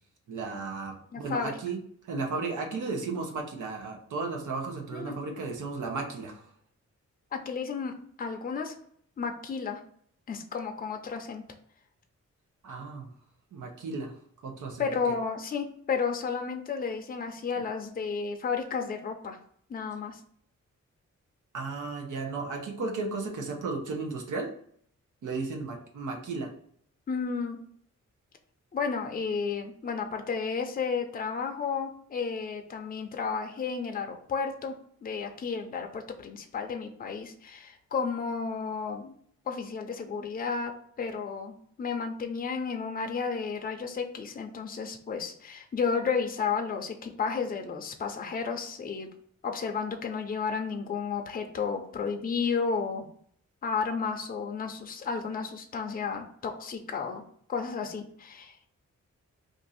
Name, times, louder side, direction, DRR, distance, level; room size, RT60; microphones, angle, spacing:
voice 1, 0.3-6.5 12.6-13.1 13.5-14.1 14.4-15.1 21.5-24.5 25.2-26.5, right 3 dB, 85° right, 1 dB, 0.8 m, -34 dB
voice 2, 1.1-1.6 4.9-5.2 7.3-8.7 9.2-9.8 10.3-11.4 14.8-19.4 19.7-20.2 27.1-27.6 28.7-34.7 35.0-39.2 39.5-40.7 41.0-49.1 49.4-53.1 53.6-57.2 57.5-58.6, left 5 dB, 30° left, 4 dB, 0.5 m, -32 dB
2.6 x 2.5 x 4.0 m, 0.62 s
wide cardioid pair, 120°, 30 cm